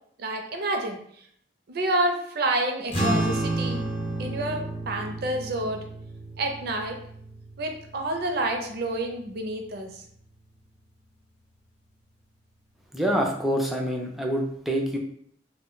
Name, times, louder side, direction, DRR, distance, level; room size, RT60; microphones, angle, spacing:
voice 1, 0.2-1.0 1.7-3.8 4.2-5.8 6.4-7.0 7.6-10.0, right 1 dB, 55° right, 3 dB, 0.5 m, -28 dB
sound 1, 2.9-9.6, right 1 dB, 30° left, 0.7 m, -31 dB
voice 2, 12.9-15.0, equal, ahead, -1 dB, 0.4 m, -26 dB
2.2 x 2.1 x 3.7 m, 0.66 s
head